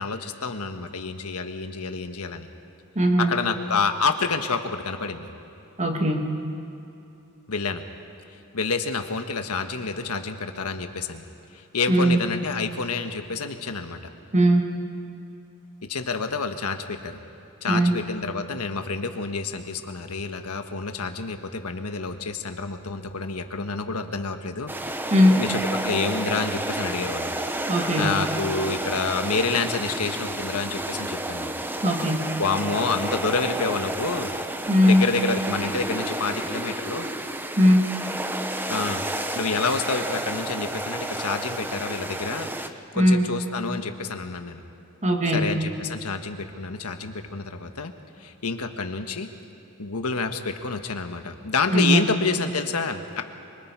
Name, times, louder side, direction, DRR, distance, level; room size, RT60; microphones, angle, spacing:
voice 1, 0.0-2.5 3.2-5.3 7.5-7.8 8.5-11.2 11.5-14.0 15.9-17.2 17.6-24.7 25.4-27.4 28.0-31.5 32.4-34.3 34.8-37.1 38.7-44.6 45.3-47.9 48.2-49.3 49.8-53.2, left 4 dB, 80° left, 7 dB, 1.4 m, -28 dB
voice 2, 3.0-3.3 5.8-6.3 11.9-12.2 14.3-14.8 17.7-18.1 25.1-25.4 27.7-28.1 31.8-32.3 34.7-35.1 37.6-37.9 43.0-43.2 45.0-45.5 51.7-52.1, equal, 30° right, 3 dB, 1.9 m, -19 dB
sound 1, 24.7-42.7, right 1 dB, 10° right, 0.8 m, -31 dB
26.5 x 24.0 x 4.8 m, 2.9 s
head